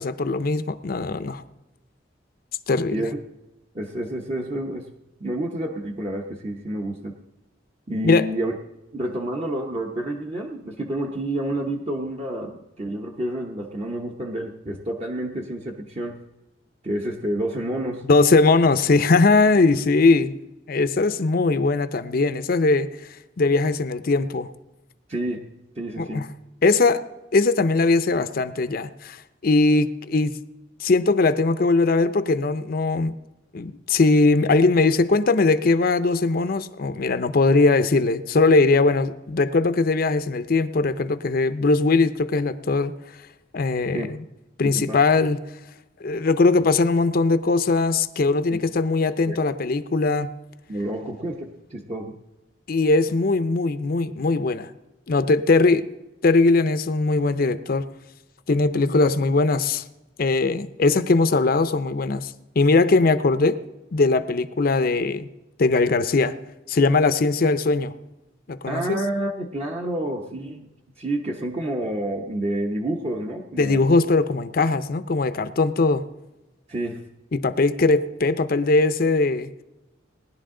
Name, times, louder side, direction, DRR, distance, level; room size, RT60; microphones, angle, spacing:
voice 1, 0.0-1.4 2.7-3.1 8.0-8.3 18.1-20.3 20.7-22.9 23.4-24.5 26.0-26.3 26.6-27.0 27.3-29.2 29.4-30.4 30.8-33.2 33.5-42.9 43.5-44.2 44.6-45.4 46.0-50.3 52.7-54.7 55.1-55.9 56.2-57.8 58.5-59.8 60.2-63.6 63.9-65.3 65.6-66.4 66.7-67.9 68.5-69.0 73.6-76.0 77.3-79.6, left 3 dB, 50° left, 12 dB, 0.6 m, -20 dB
voice 2, 3.7-4.9 5.2-7.2 7.9-8.5 8.9-16.2 16.8-18.0 25.1-25.5 25.8-26.3 43.9-44.1 44.7-45.0 48.5-48.6 49.3-49.4 50.7-52.2 68.7-70.7 71.0-73.8 76.7-77.0, right 1 dB, 35° right, 0 dB, 1.0 m, -29 dB
19.0 x 11.0 x 3.8 m, 1.0 s
head